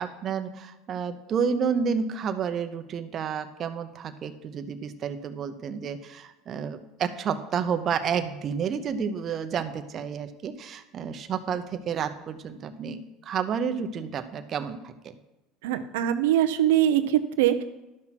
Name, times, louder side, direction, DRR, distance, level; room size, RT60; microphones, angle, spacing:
voice 1, 0.0-15.2, right 6 dB, 35° right, 8 dB, 0.8 m, -30 dB
voice 2, 15.6-17.6, right 11 dB, 90° right, 8 dB, 0.6 m, -22 dB
12.0 x 5.9 x 6.0 m, 1.0 s
supercardioid pair, 125°, 0 cm